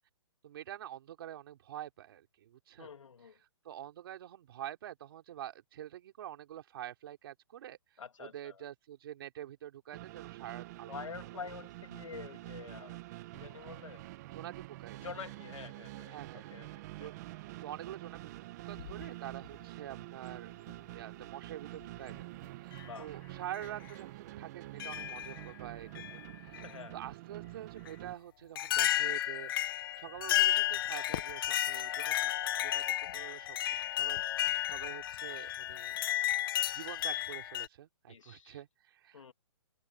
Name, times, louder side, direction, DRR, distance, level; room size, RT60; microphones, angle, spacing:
voice 1, 0.4-2.9 3.6-7.8 8.2-11.0 14.3-15.0 16.0-16.5 17.0-17.2 17.6-20.5 20.9-26.6 26.9-29.5 30.0-32.3 32.6-33.6 34.0-36.0 36.7-39.3, right 12 dB, 50° right, 3.5 m, -46 dB
voice 2, 2.8-3.4 8.0-8.6 10.9-14.1 15.0-16.7 17.0-17.1 22.8-23.2 26.6-27.0 38.1-38.6 39.1-39.3, left 6 dB, 90° left, 3.0 m, -47 dB
sound 1, 9.9-28.2, right 18 dB, 35° right, 1.6 m, -47 dB
sound 2, 18.7-19.5 20.7-20.8 21.8-22.1 22.7-22.9 23.5-23.7 24.8-25.5 25.9-26.7 27.8-27.9 28.5-37.7, left 13 dB, 45° left, 1.7 m, -33 dB
hypercardioid pair, 155°, 16 cm